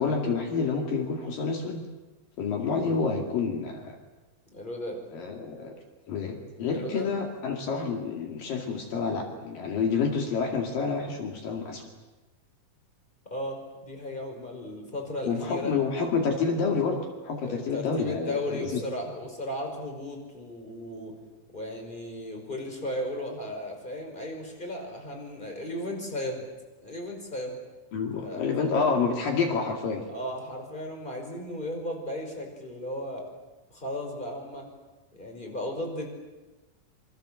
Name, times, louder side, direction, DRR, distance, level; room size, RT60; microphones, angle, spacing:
voice 1, 0.0-1.8 2.4-4.0 5.1-5.8 6.1-11.8 15.3-18.8 27.9-30.0, left 5 dB, 65° left, 3 dB, 3.9 m, -28 dB
voice 2, 4.5-5.0 6.7-7.2 13.3-15.8 17.4-21.2 21.5-26.5 26.8-27.6 28.2-28.9 30.1-33.2 33.7-34.7 35.1-36.1, left 1 dB, 10° left, 2 dB, 5.1 m, -35 dB
27.0 x 25.0 x 7.7 m, 1.2 s
omnidirectional pair, 4.3 m